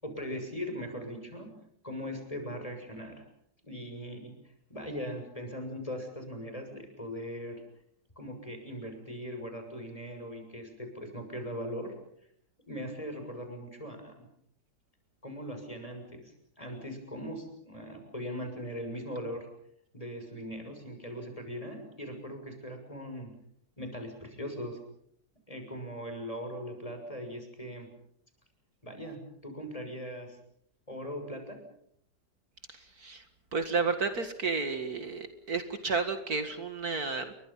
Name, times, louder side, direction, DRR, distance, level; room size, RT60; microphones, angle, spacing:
voice 1, 0.0-1.5 1.8-3.2 3.6-4.3 4.7-7.6 8.2-11.9 12.7-14.2 15.2-19.5 19.9-23.3 23.8-24.8 25.5-27.9 28.8-30.4 30.9-31.6, equal, 20° left, 5 dB, 6.9 m, -40 dB
voice 2, 32.7-33.2 33.5-37.3, right 4 dB, 55° right, 8 dB, 2.3 m, -32 dB
30.0 x 24.0 x 5.7 m, 0.69 s
omnidirectional pair, 1.9 m